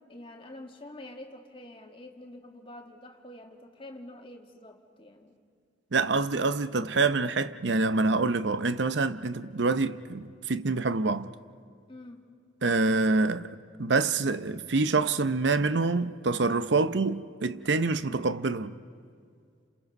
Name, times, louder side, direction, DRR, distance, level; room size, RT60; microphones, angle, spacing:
voice 1, 0.1-5.4 11.9-12.3, left 1 dB, 30° left, 2.1 m, -47 dB
voice 2, 5.9-11.3 12.6-18.8, right 3 dB, 75° right, 0.7 m, -26 dB
30.0 x 27.5 x 5.4 m
head